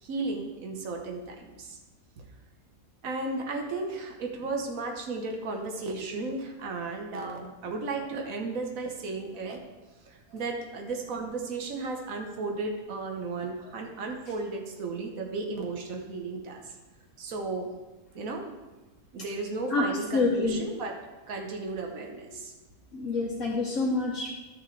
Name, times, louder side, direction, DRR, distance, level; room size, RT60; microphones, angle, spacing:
voice 1, 0.0-1.8 2.2-2.3 3.0-9.6 10.1-16.6 17.2-17.7 18.1-18.5 19.1-21.0 21.3-22.5, right 3 dB, 75° right, 2 dB, 1.5 m, -34 dB
voice 2, 20.1-20.6 22.9-24.3, left 3 dB, 60° left, -4 dB, 1.5 m, -27 dB
12.5 x 7.1 x 3.3 m, 1.2 s
omnidirectional pair, 1.5 m